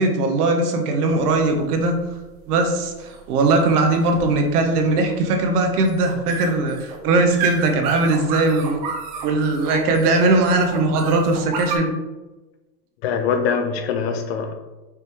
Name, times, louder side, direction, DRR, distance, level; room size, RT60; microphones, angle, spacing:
voice 1, 0.0-1.9 2.5-8.8 9.2-11.9, right 2 dB, 65° right, 4 dB, 1.1 m, -19 dB
sound 1, 1.1-11.8, right 4 dB, 30° right, 0.3 m, -32 dB
voice 2, 13.0-14.5, left 6 dB, 45° left, 6 dB, 0.4 m, -23 dB
5.0 x 3.0 x 3.5 m, 1.1 s
hypercardioid pair, 130°, 50 cm